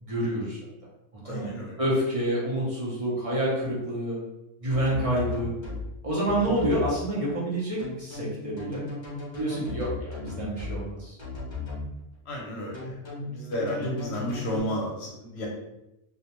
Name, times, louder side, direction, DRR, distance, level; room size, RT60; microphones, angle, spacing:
voice 1, 0.0-0.6 1.2-1.5 1.8-4.2 4.6-5.5 6.0-8.8 9.4-11.2, right 1 dB, 40° right, -5 dB, 0.6 m, -28 dB
voice 2, 1.2-1.7 12.3-12.9 13.2-15.5, equal, 65° left, -2 dB, 0.8 m, -32 dB
sound 1, 4.7-5.8 6.2-6.9 7.8-10.8 11.2-11.8 12.7-14.6, left 3 dB, 30° left, 0.6 m, -36 dB
2.3 x 2.1 x 2.8 m, 0.90 s
omnidirectional pair, 1.3 m